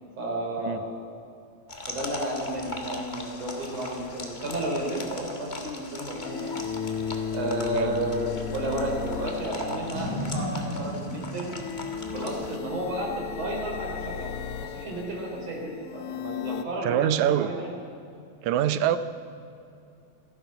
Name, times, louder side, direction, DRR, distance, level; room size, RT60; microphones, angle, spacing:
voice 1, 0.2-0.9 1.9-6.6 7.3-11.6 12.1-14.3 14.6-17.7, right 1 dB, 55° right, -2 dB, 4.7 m, -32 dB
sound 1, 1.7-12.6, left 2 dB, 35° left, 0.7 m, -39 dB
sound 2, 3.9-4.0 6.1-10.6 11.4-16.7, left 8 dB, 80° left, 1.3 m, -35 dB
Boom, 9.9-13.3, equal, 35° right, 3.2 m, -35 dB
voice 2, 16.8-17.5 18.4-19.0, right 11 dB, 80° right, 12 dB, 2.1 m, -24 dB
27.0 x 9.0 x 5.8 m, 2.5 s
omnidirectional pair, 3.4 m